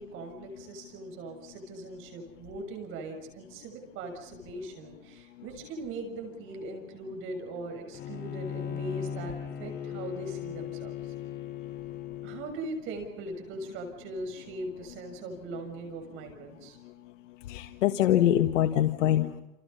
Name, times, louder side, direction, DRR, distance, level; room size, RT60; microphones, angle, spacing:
voice 1, 0.0-11.1 12.2-16.8, right 2 dB, 30° right, 4 dB, 6.8 m, -40 dB
Bowed string instrument, 7.9-12.5, left 9 dB, 25° left, 3.6 m, -37 dB
voice 2, 17.5-19.4, left 12 dB, 65° left, 6 dB, 1.6 m, -24 dB
29.5 x 27.5 x 5.6 m, 0.85 s
supercardioid pair, 165°, 39 cm